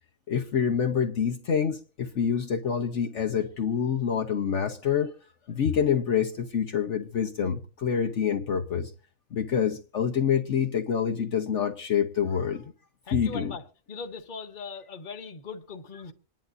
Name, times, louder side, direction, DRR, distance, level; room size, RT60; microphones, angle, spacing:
voice 1, 0.3-5.1 5.5-8.9 9.3-12.7 13.1-13.5, left 7 dB, 60° left, 1.2 m, -26 dB
voice 2, 13.0-16.1, left 5 dB, 40° left, 1.2 m, -40 dB
27.0 x 10.5 x 2.6 m
omnidirectional pair, 1.4 m